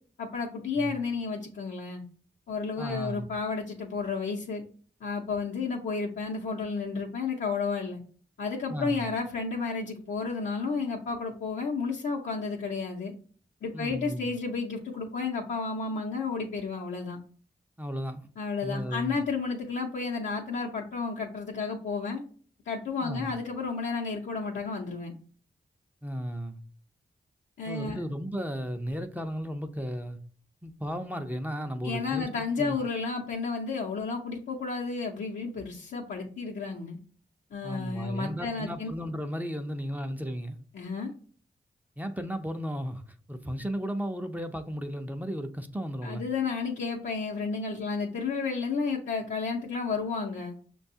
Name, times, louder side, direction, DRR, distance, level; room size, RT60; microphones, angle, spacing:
voice 1, 0.2-2.0 2.5-4.6 5.0-8.0 8.4-13.1 13.6-17.2 18.4-22.2 22.7-25.1 27.6-28.0 31.8-37.0 37.5-38.9 40.7-41.1 46.0-50.5, left 4 dB, 85° left, 0.8 m, -32 dB
voice 2, 2.8-3.3 8.7-9.1 13.7-14.3 17.8-18.3 18.6-19.2 23.0-23.3 26.0-26.6 27.7-30.2 30.6-32.3 32.6-32.8 37.6-40.6 42.0-46.2, equal, 10° right, 0.5 m, -34 dB
5.9 x 2.3 x 2.7 m
cardioid pair, 45°, 19 cm